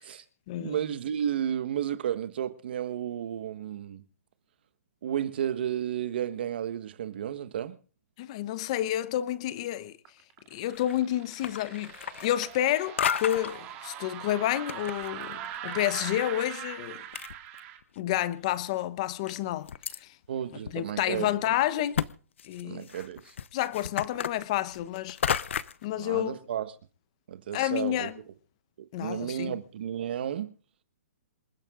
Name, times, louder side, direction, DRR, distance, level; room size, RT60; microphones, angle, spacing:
voice 1, 0.6-4.0 5.0-7.8 20.3-21.6 22.6-23.3 26.0-26.7 27.3-28.1 28.8-30.6, right 10 dB, 45° right, 1.4 m, -32 dB
voice 2, 8.2-10.0 10.5-11.9 12.2-17.0 18.0-19.7 20.0-20.1 20.7-22.0 22.5-22.9 23.5-25.2 25.8-26.4 27.5-28.1 28.9-29.6, left 13 dB, 25° left, 0.9 m, -29 dB
sound 1, 10.0-17.8, right 11 dB, 20° right, 2.0 m, -41 dB
sound 2, 10.6-11.0 11.3-12.7 13.0-13.6 14.3-16.2 16.9-17.0 17.1-18.0 18.5-18.6 19.3-20.0 20.6-20.7 21.1-21.2 21.9-22.1 22.4-25.8, left 8 dB, 55° left, 0.9 m, -33 dB
27.0 x 10.5 x 3.8 m
hypercardioid pair, 175°, 8 cm